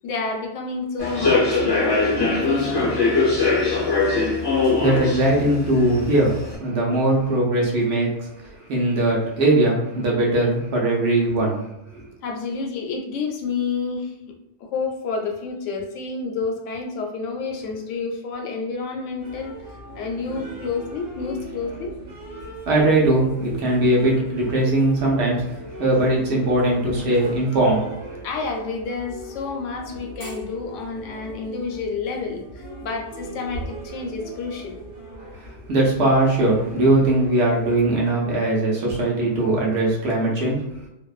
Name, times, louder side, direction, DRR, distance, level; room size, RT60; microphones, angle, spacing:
voice 1, 0.0-2.0 2.3-2.9 12.2-14.1 14.6-19.5 20.0-21.9 28.2-34.8, left 4 dB, 85° left, 2 dB, 0.9 m, -29 dB
Human voice / Subway metro underground, 1.0-6.5, left 3 dB, 30° left, 0.5 m, -21 dB
voice 2, 4.8-8.1 8.7-11.6 11.9-12.0 22.7-25.4 25.8-28.2 35.7-40.6, right 1 dB, 65° right, -3 dB, 0.9 m, -20 dB
sound 1, 19.2-38.0, right 1 dB, 85° right, 1.3 m, -39 dB
2.5 x 2.1 x 2.3 m, 0.89 s
omnidirectional pair, 1.2 m